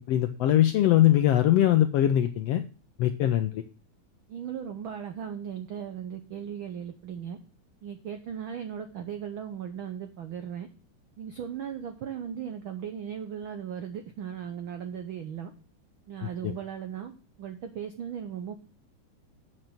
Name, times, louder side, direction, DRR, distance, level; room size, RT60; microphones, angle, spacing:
voice 1, 0.1-2.6 3.0-3.6 16.4-16.5, left 12 dB, 80° left, 8 dB, 1.4 m, -22 dB
voice 2, 4.3-7.4 7.8-10.7 11.2-15.5 16.1-18.6, right 8 dB, 85° right, 7 dB, 1.1 m, -37 dB
7.9 x 6.6 x 5.8 m, 0.36 s
omnidirectional pair, 3.5 m